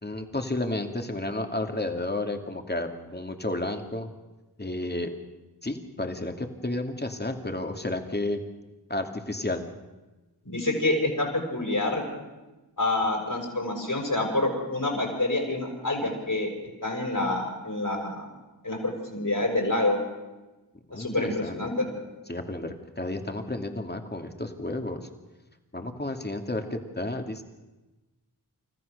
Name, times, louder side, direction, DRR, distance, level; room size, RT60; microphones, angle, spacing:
voice 1, 0.0-4.1 4.6-5.1 5.6-8.4 8.9-9.7 20.9-21.6 22.3-25.0 25.7-27.4, left 2 dB, 25° left, 5 dB, 2.5 m, -32 dB
voice 2, 10.4-12.0 12.8-16.5 16.8-18.2 18.6-20.0 20.9-21.9, left 2 dB, 55° left, 2 dB, 6.2 m, -27 dB
29.5 x 14.5 x 6.7 m, 1.1 s
wide cardioid pair, 45°, 38 cm